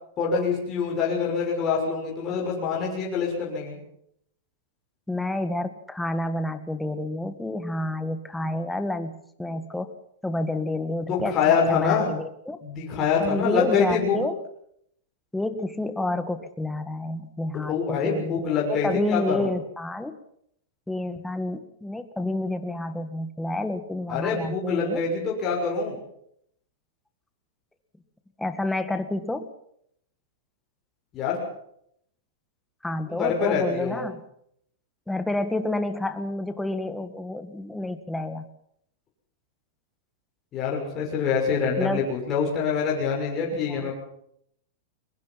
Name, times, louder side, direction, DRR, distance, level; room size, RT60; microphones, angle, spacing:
voice 1, 0.2-3.8 11.1-12.1 12.6-14.2 17.5-19.5 24.1-26.0 31.1-31.4 33.1-34.1 40.5-43.9, left 5 dB, 25° left, -2 dB, 6.5 m, -25 dB
voice 2, 5.1-9.9 10.2-12.6 13.2-14.4 15.3-18.4 18.7-20.1 20.9-25.0 28.4-29.5 32.8-34.2 35.1-38.5 41.8-42.1 43.7-43.9, left 2 dB, 5° left, 9 dB, 1.7 m, -29 dB
23.0 x 21.5 x 5.8 m, 0.71 s
supercardioid pair, 160°, 0 cm